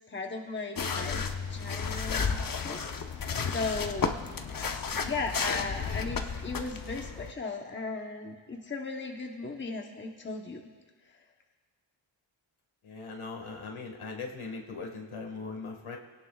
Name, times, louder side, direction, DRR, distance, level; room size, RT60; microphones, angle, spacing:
voice 1, 0.1-2.8 3.4-4.2 5.0-10.6, left 3 dB, 25° left, 2 dB, 1.0 m, -36 dB
sound 1, 0.8-7.3, left 5 dB, 45° left, 0.8 m, -33 dB
voice 2, 12.8-16.0, left 4 dB, 75° left, 2 dB, 1.9 m, -40 dB
26.5 x 17.5 x 2.4 m, 1.5 s
wide cardioid pair, 150°, 49 cm